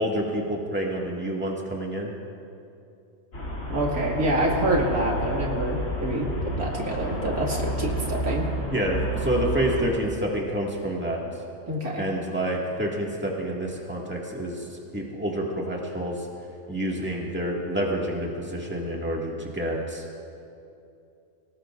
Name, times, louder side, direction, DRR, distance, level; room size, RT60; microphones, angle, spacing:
voice 1, 0.0-2.1 8.7-11.2 12.0-16.2 16.7-20.0, right 1 dB, 10° right, -3 dB, 2.0 m, -28 dB
Traffic noise roadway noise, 3.3-9.9, equal, 65° left, 3.2 m, -30 dB
voice 2, 3.7-6.3 6.6-8.5 11.7-12.0, right 1 dB, 90° right, -2 dB, 2.7 m, -26 dB
24.0 x 19.0 x 2.6 m, 2.6 s
omnidirectional pair, 1.5 m